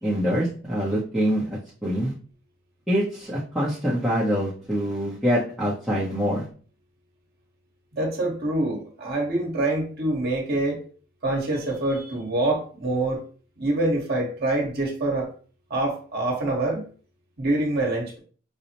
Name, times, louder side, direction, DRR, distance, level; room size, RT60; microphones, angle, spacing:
voice 1, 0.0-2.1 2.9-6.4, equal, ahead, 0.7 m, -25 dB
voice 2, 8.0-10.8 11.2-13.2 13.6-15.3 15.7-16.9 17.4-18.2, right 2 dB, 45° right, 1.1 m, -25 dB
5.2 x 2.0 x 2.8 m
head